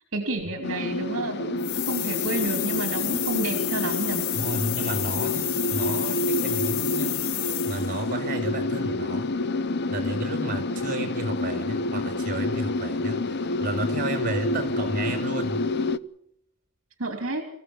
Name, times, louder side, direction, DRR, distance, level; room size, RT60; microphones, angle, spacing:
voice 1, 0.1-4.2 17.0-17.4, right 2 dB, 70° right, 5 dB, 3.0 m, -30 dB
sound 1, 0.6-16.0, left 2 dB, 50° left, 0.8 m, -28 dB
sound 2, 1.6-8.0, left 14 dB, 90° left, 1.3 m, -30 dB
voice 2, 4.3-9.3 9.9-15.6, right 1 dB, 40° right, 6 dB, 6.6 m, -32 dB
26.0 x 16.0 x 7.1 m, 0.77 s
head